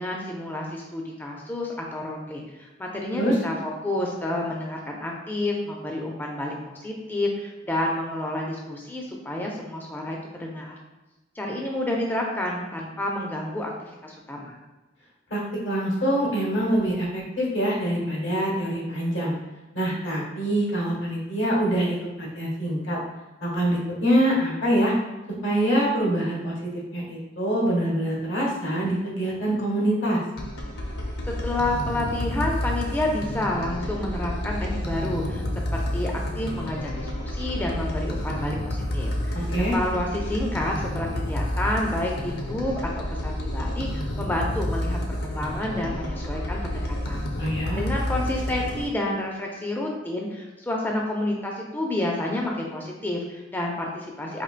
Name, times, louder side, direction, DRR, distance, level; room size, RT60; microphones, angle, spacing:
voice 1, 0.0-10.8 11.4-13.7 14.0-14.6 31.2-35.4 35.7-39.5 39.7-47.2 47.7-54.4, left 1 dB, 10° left, -1 dB, 0.4 m, -29 dB
voice 2, 15.3-19.3 19.7-23.0 23.4-24.9 25.4-26.5 26.9-30.2 39.5-39.7 47.4-47.8, right 1 dB, 85° left, -2 dB, 1.1 m, -25 dB
sound 1, 30.4-48.9, left 1 dB, 60° left, 0.6 m, -30 dB
4.4 x 2.7 x 2.4 m, 1.1 s
head